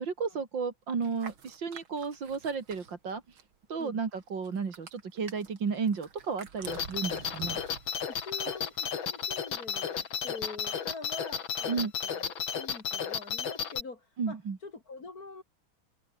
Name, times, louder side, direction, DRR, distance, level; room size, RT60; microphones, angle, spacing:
voice 1, 0.0-3.4 3.7-7.6 11.7-11.9 14.2-14.6, right 5 dB, 65° right, 3.2 m, -33 dB
sound 1, 1.0-3.6 3.8-8.8, right 6 dB, 85° right, 3.1 m, -48 dB
sound 2, 6.7-13.8, left 7 dB, 75° left, 2.7 m, -33 dB
voice 2, 8.0-15.4, left 3 dB, 45° left, 3.5 m, -45 dB
open air
omnidirectional pair, 2.2 m